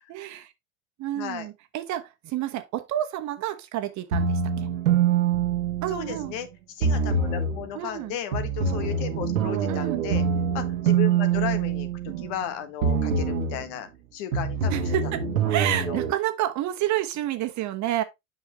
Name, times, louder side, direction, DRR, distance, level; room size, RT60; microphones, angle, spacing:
voice 1, 0.1-0.5 1.0-4.7 5.8-6.3 7.7-8.2 9.7-10.0 12.1-12.3 14.7-15.2 15.5-18.0, right 13 dB, 45° right, 1.2 m, -29 dB
voice 2, 1.1-1.5 5.9-10.2 10.5-15.0 15.4-16.0, left 10 dB, 60° left, 1.6 m, -35 dB
sound 1, 4.1-6.4 6.8-7.6 8.3-12.4 12.8-13.6 14.3-16.1, right 6 dB, 80° right, 1.3 m, -25 dB
7.9 x 5.5 x 3.1 m
hypercardioid pair, 85°, 40 cm